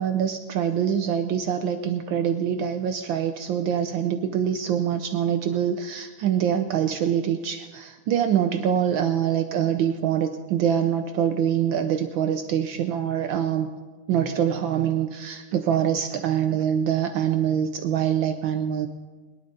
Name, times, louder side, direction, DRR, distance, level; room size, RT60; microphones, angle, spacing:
voice 1, 0.0-13.7 14.1-18.9, right 9 dB, 75° right, 8 dB, 1.3 m, -24 dB
22.0 x 11.0 x 3.9 m, 1.4 s
omnidirectional pair, 2.3 m